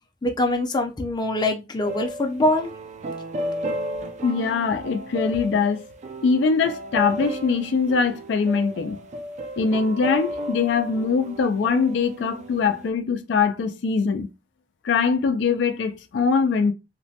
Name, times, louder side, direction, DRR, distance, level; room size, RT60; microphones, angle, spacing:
voice 1, 0.2-2.7, left 1 dB, 25° left, 0.5 m, -23 dB
sound 1, 1.8-12.9, equal, 40° right, 0.4 m, -33 dB
voice 2, 4.2-5.8 6.2-9.0 9.6-14.3 14.8-16.7, left 5 dB, 80° left, 0.4 m, -22 dB
2.9 x 2.1 x 2.7 m
head